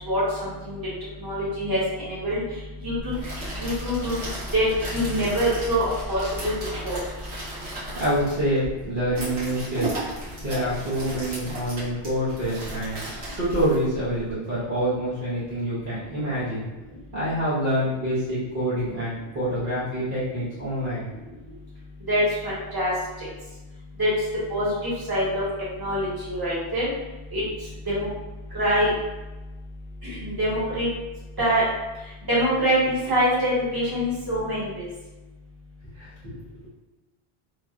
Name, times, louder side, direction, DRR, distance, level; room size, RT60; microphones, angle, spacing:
voice 1, 0.1-0.8 1.2-2.4 2.8-3.1 3.5-4.2 4.5-4.7 4.9-6.5 6.8-7.0 22.1-22.9 23.2-23.3 24.0-24.1 24.5-25.4 25.8-26.9 27.3-27.4 27.9-28.1 28.5-28.9 30.0-30.9 31.4-31.6 32.3-34.9, equal, 20° right, -9 dB, 1.1 m, -24 dB
sound 1, 3.0-14.3, right 1 dB, 80° right, 1.4 m, -35 dB
voice 2, 7.9-9.9 10.4-13.0 13.4-16.7 17.1-21.1 21.5-21.6 36.0-36.4, equal, 55° right, -10 dB, 1.0 m, -26 dB
2.9 x 2.6 x 2.3 m, 1.1 s
omnidirectional pair, 1.1 m